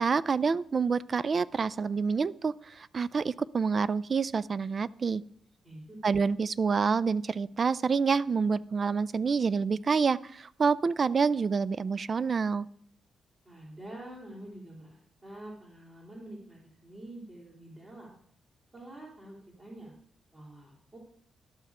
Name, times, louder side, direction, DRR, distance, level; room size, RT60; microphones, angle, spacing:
voice 1, 0.0-5.2 6.0-12.7, right 5 dB, 50° right, 19 dB, 0.4 m, -27 dB
voice 2, 5.6-5.9 13.4-18.1 18.7-19.9 20.3-21.0, right 1 dB, 30° right, -6 dB, 3.3 m, -47 dB
12.5 x 5.6 x 4.8 m, 0.64 s
cardioid pair, 65°, 0 cm